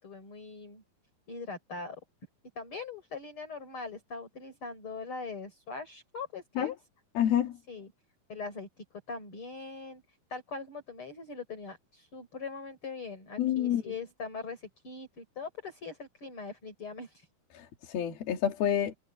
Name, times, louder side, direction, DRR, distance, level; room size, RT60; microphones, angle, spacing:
voice 1, 0.0-0.8 1.3-2.0 2.6-6.8 7.7-7.9 8.3-10.0 10.3-17.3, left 4 dB, 35° left, 5.9 m, -41 dB
voice 2, 7.2-7.6 13.4-13.9 17.5-19.0, left 10 dB, 80° left, 4.1 m, -28 dB
omnidirectional pair, 4.3 m